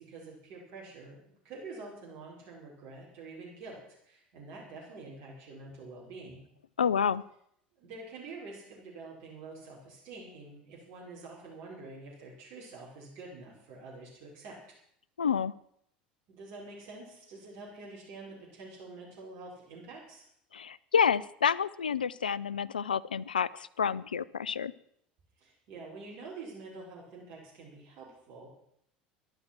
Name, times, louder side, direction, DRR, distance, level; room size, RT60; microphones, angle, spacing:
voice 1, 0.0-6.4 7.8-14.6 16.3-20.2 25.4-28.5, right 3 dB, 55° right, -4 dB, 5.2 m, -47 dB
voice 2, 6.8-7.2 15.2-15.5 20.5-24.7, left 7 dB, 90° left, 21 dB, 0.5 m, -29 dB
13.5 x 12.0 x 6.1 m, 0.72 s
hypercardioid pair, 75°, 5 cm